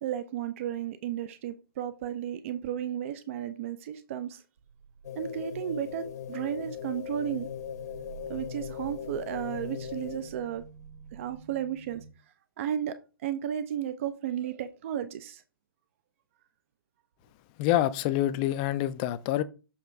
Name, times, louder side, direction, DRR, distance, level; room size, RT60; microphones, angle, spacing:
voice 1, 0.0-4.4 5.2-7.5 8.3-10.6 11.1-12.0 12.6-13.0 13.2-15.4, right 10 dB, 35° right, 0.5 m, -33 dB
sound 1, 4.6-12.1, right 6 dB, 60° right, 1.4 m, -49 dB
sound 2, 5.0-10.5, left 9 dB, 45° left, 0.9 m, -39 dB
voice 2, 17.6-19.4, left 13 dB, 20° left, 0.4 m, -26 dB
7.1 x 3.2 x 4.6 m
figure-of-eight pair, 135°, 12 cm